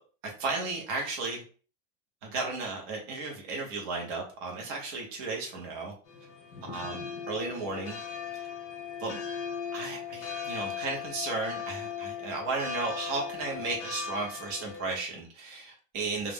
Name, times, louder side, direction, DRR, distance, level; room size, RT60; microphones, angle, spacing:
voice 1, 0.2-1.4 2.2-5.9 6.7-8.0 8.3-8.4 9.0-9.2 9.7-16.3, right 3 dB, 40° right, 0 dB, 0.7 m, -34 dB
sound 1, 6.1-15.0, left 7 dB, 45° left, 0.8 m, -38 dB
2.3 x 2.1 x 3.4 m, 0.38 s
supercardioid pair, 180°, 29 cm